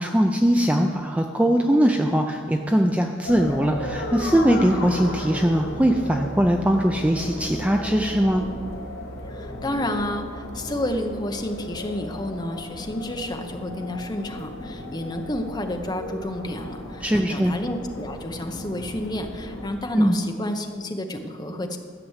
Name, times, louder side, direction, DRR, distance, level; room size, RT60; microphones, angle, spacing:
voice 1, 0.0-8.4 17.0-17.5 19.9-20.2, equal, 5° right, 3 dB, 0.4 m, -21 dB
sound 1, 3.2-19.7, left 1 dB, 85° left, 2.1 m, -35 dB
voice 2, 9.3-21.8, left 1 dB, 20° left, 5 dB, 0.8 m, -30 dB
12.5 x 6.0 x 8.0 m, 2.1 s
head